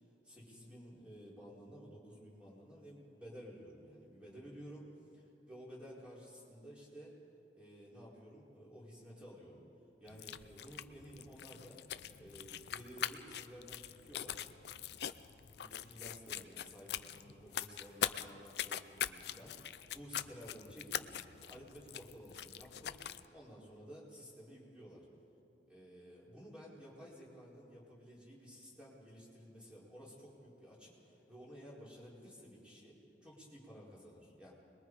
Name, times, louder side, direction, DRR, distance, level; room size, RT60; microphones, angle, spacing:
voice 1, 0.2-4.9 5.1-7.1 7.5-9.6 10.0-11.8 12.2-14.4 15.6-23.0 23.3-25.1 25.7-34.5, equal, 5° right, -6 dB, 4.8 m, -54 dB
sound 1, 10.1-23.3, left 9 dB, 65° left, 0.5 m, -43 dB
25.5 x 21.5 x 5.0 m, 2.8 s
head